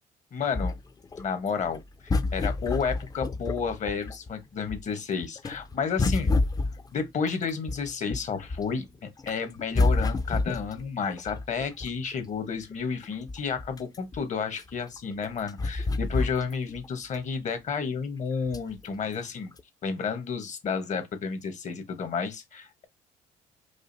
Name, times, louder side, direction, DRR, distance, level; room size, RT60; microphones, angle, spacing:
voice 1, 0.3-0.8 1.2-6.3 6.9-19.5 19.8-22.8, left 6 dB, 45° left, 1.1 m, -31 dB
sound 1, 0.5-4.3 4.7-8.8 9.2-12.1 12.7-12.8 13.0-16.9 17.2-17.3 18.5-18.8 19.5-19.6, left 3 dB, 25° left, 0.4 m, -29 dB
4.9 x 2.4 x 2.6 m
cardioid pair, 90°, 17 cm